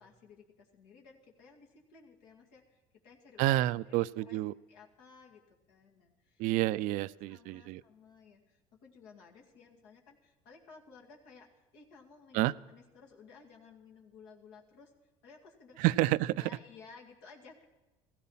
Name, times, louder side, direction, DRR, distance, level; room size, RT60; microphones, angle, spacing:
voice 1, 0.0-3.5 3.9-4.4 4.7-5.4 5.7-6.4 7.0-15.9 16.3-17.6, left 5 dB, 85° left, -1 dB, 2.3 m, -57 dB
voice 2, 3.4-4.5 6.4-7.8 12.3-12.5 15.8-16.3, right 16 dB, 70° right, 18 dB, 0.4 m, -29 dB
15.5 x 15.5 x 5.7 m, 1.1 s
supercardioid pair, 95°, 14 cm